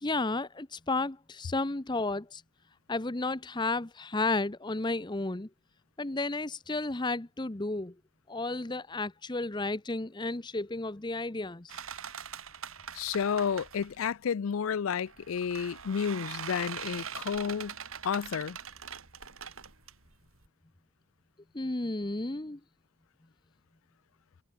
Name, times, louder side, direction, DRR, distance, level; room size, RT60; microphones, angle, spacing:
voice 1, 0.0-2.4 2.9-5.5 6.0-7.9 8.3-11.8 21.5-22.6, left 2 dB, 20° left, 0.8 m, -32 dB
sound 1, 11.7-14.0 15.1-20.5, right 7 dB, 85° right, 3.6 m, -42 dB
voice 2, 12.9-17.7 18.0-18.6, left 7 dB, 75° left, 0.4 m, -31 dB
head